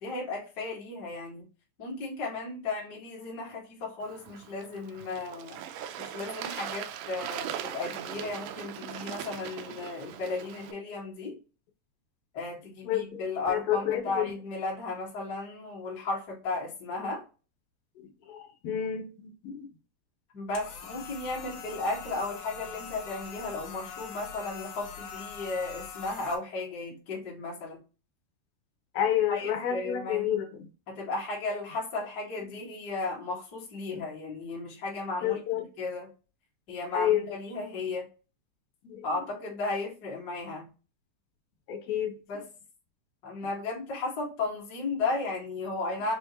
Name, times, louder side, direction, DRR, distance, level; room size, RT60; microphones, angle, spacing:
voice 1, 0.0-1.5 1.8-5.6 6.0-11.4 12.3-17.2 20.3-27.8 29.3-30.3 30.9-35.4 35.8-36.1 36.7-38.0 39.0-40.7 42.3-42.5 43.2-46.1, left 3 dB, 40° left, 1.5 m, -35 dB
Bird / Water, 4.0-10.7, right 9 dB, 80° right, 1.8 m, -40 dB
voice 2, 12.8-13.2 13.5-14.3 18.3-19.7 28.9-30.7 33.9-34.0 35.2-35.6 36.9-37.3 38.8-39.0 41.7-42.1, left 10 dB, 85° left, 2.8 m, -29 dB
sound 1, 20.5-26.3, left 7 dB, 70° left, 2.3 m, -43 dB
6.4 x 2.4 x 2.9 m
omnidirectional pair, 3.9 m